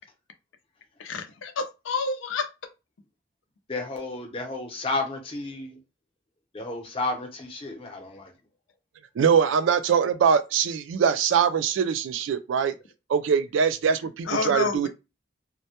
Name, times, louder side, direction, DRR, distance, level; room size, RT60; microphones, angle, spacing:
voice 1, 1.0-2.5 14.3-14.9, left 4 dB, 90° left, 0.5 m, -29 dB
voice 2, 3.7-5.8 6.5-8.3, left 2 dB, 30° left, 0.6 m, -32 dB
voice 3, 9.2-12.7 13.1-14.9, right 7 dB, 85° right, 0.3 m, -22 dB
2.1 x 2.1 x 2.8 m
head